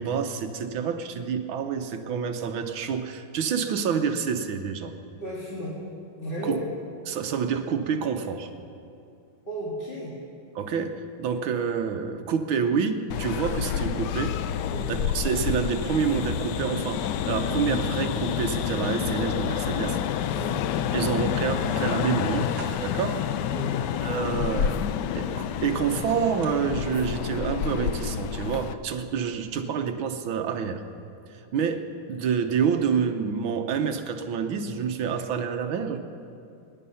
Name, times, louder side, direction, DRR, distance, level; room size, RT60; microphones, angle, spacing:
voice 1, 0.0-4.9 6.4-6.6 7.1-8.5 10.5-14.4 14.9-20.0 20.9-22.5 22.8-23.2 24.0-24.8 25.1-30.8 31.3-36.0, right 6 dB, 75° right, 7 dB, 1.7 m, -28 dB
voice 2, 5.2-5.7 6.1-6.7 9.5-10.1 14.6-14.9 20.3-20.6 23.5-23.8, equal, 25° left, -7 dB, 2.5 m, -34 dB
sound 1, 13.1-28.7, left 9 dB, 70° left, 1.0 m, -28 dB
sound 2, 21.2-26.7, right 4 dB, 55° right, 1.6 m, -49 dB
24.0 x 10.5 x 5.6 m, 2.5 s
omnidirectional pair, 2.3 m